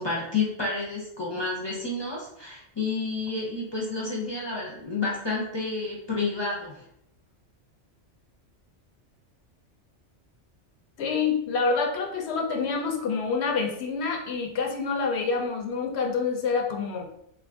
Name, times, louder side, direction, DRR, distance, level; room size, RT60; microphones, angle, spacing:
voice 1, 0.0-6.8, left 3 dB, 30° left, -4 dB, 0.6 m, -30 dB
voice 2, 11.0-17.1, left 5 dB, 70° left, 2 dB, 0.8 m, -27 dB
2.8 x 2.3 x 3.5 m, 0.73 s
omnidirectional pair, 1.2 m